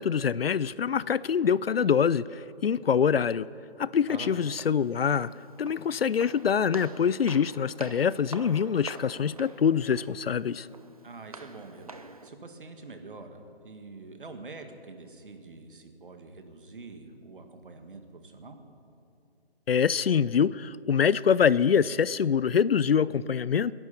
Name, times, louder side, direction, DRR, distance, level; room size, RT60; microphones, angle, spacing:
voice 1, 0.0-3.5 3.8-5.3 5.6-10.7 19.7-23.7, left 7 dB, 65° left, 20 dB, 0.5 m, -25 dB
voice 2, 4.1-4.5 11.0-12.0 12.2-18.6, right 3 dB, 55° right, 6 dB, 1.9 m, -45 dB
Walk footsteps, 4.3-12.3, right 3 dB, 35° right, 0.6 m, -46 dB
22.0 x 11.0 x 5.8 m, 2.7 s
hypercardioid pair, 175°, 32 cm